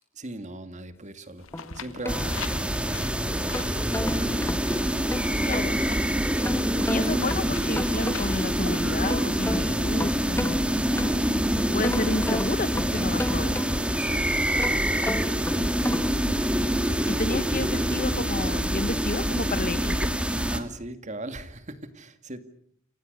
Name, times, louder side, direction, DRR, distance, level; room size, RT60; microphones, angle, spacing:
voice 1, 0.2-1.5 1.7-2.7 3.9-4.5 13.5-14.9 20.3-22.4, right 2 dB, 35° right, 2.2 m, -40 dB
sound 1, 1.4-9.7, left 5 dB, 75° left, 2.0 m, -43 dB
sound 2, 1.5-2.9 3.3-5.7 6.4-8.5 8.8-11.4 11.8-14.0 14.5-16.2, left 1 dB, 10° left, 1.5 m, -34 dB
sound 3, 2.1-20.6, equal, 5° right, 2.2 m, -26 dB
voice 2, 5.4-5.8 6.9-10.7 11.6-13.6 17.1-20.1, left 2 dB, 40° left, 1.1 m, -31 dB
29.5 x 26.5 x 6.8 m
head